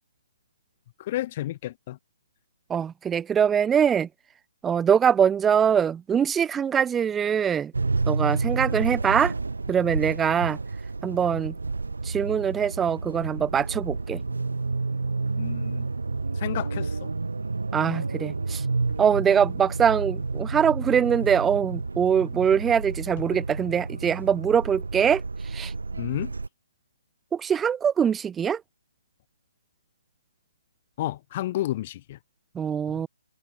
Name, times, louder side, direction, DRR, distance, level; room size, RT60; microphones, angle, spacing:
voice 1, 1.0-2.0 15.3-15.9 16.4-17.1 26.0-26.3 31.0-32.2, left 14 dB, 30° left, 0.6 m, -31 dB
voice 2, 2.7-4.1 4.6-7.7 8.1-9.3 9.7-10.6 11.0-11.5 12.0-14.2 17.7-18.6 19.0-25.7 27.3-28.6 32.5-33.1, right 8 dB, 10° right, 0.8 m, -23 dB
sound 1, 7.7-26.5, right 3 dB, 75° right, 2.9 m, -30 dB
open air
figure-of-eight pair, 145°, 0 cm